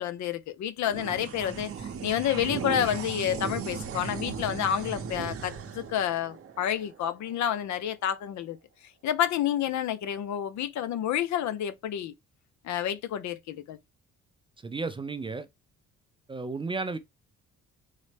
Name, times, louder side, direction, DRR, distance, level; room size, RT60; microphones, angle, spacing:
voice 1, 0.0-8.6 9.0-12.1 12.6-13.8, left 10 dB, 70° left, 0.6 m, -29 dB
sound 1, 0.8-7.6, right 6 dB, 50° right, 0.7 m, -37 dB
voice 2, 14.6-15.5 16.3-17.0, right 3 dB, 20° right, 0.3 m, -33 dB
3.9 x 2.1 x 3.2 m
cardioid pair, 90°, 30 cm